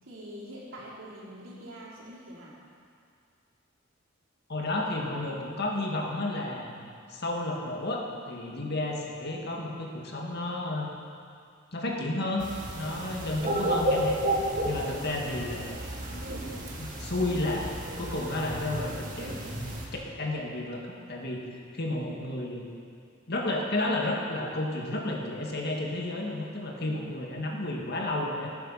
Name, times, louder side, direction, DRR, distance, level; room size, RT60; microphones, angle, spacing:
voice 1, 0.0-2.6 8.5-8.7 12.8-13.0 26.8-27.0, equal, 70° right, -6 dB, 4.0 m, -45 dB
voice 2, 4.5-10.9 11.7-14.2 14.6-15.8 16.8-19.9 20.2-21.5 21.7-22.7 23.3-28.5, left 2 dB, 55° left, -1 dB, 2.0 m, -32 dB
sound 1, 12.4-19.9, right 1 dB, 40° right, 2.1 m, -32 dB
19.0 x 9.3 x 5.8 m, 2.3 s
head